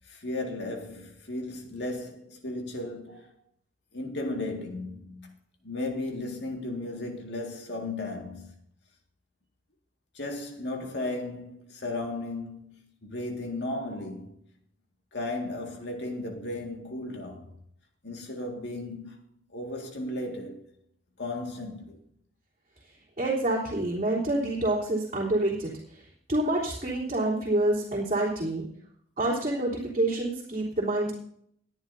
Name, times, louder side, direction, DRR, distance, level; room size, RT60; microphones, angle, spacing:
voice 1, 0.1-3.3 3.9-5.4 5.6-8.5 10.1-14.4 15.1-17.5 18.0-19.2 19.5-20.6 21.2-22.0, left 2 dB, 65° left, 2.0 m, -35 dB
voice 2, 23.2-25.7 26.3-28.6 29.2-31.1, right 1 dB, 35° right, 3.5 m, -27 dB
20.5 x 11.0 x 2.7 m
head